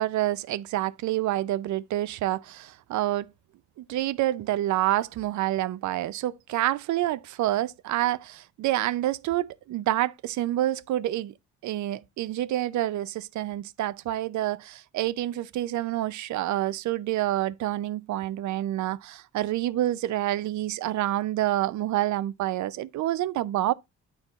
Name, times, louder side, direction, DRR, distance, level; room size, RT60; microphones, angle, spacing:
voice 1, 0.0-3.3 3.8-11.3 11.6-23.7, right 14 dB, 70° right, 0.5 m, -28 dB
9.1 x 4.3 x 3.9 m
cardioid pair, 90°, 30 cm